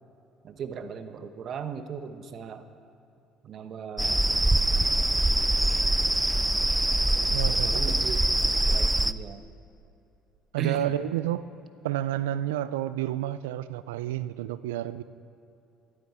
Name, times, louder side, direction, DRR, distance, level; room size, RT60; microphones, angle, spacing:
voice 1, 0.4-2.6 3.4-4.2 7.5-9.4 10.6-10.9, right 7 dB, 55° right, 9 dB, 1.0 m, -37 dB
sound 1, 4.0-9.1, right 1 dB, 10° right, 0.4 m, -24 dB
voice 2, 7.3-7.9 10.5-11.5 11.8-15.0, right 13 dB, 85° right, 15 dB, 0.4 m, -30 dB
12.5 x 11.5 x 4.9 m, 2.8 s
hypercardioid pair, 65°, 0 cm